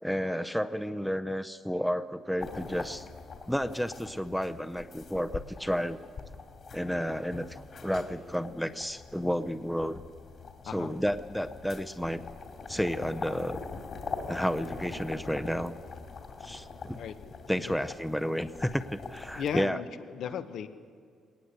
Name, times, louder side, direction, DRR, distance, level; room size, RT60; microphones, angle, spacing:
voice 1, 0.0-3.1 3.5-6.0 6.7-10.0 10.6-12.3 12.7-13.6 14.3-15.7 16.4-17.0 17.5-19.8, equal, ahead, 9 dB, 0.6 m, -31 dB
sound 1, 2.4-19.6, left 4 dB, 55° left, 2.8 m, -43 dB
voice 2, 19.4-20.7, left 8 dB, 75° left, 10 dB, 1.1 m, -36 dB
20.0 x 18.5 x 8.2 m, 2.1 s
cardioid pair, 90°, 0 cm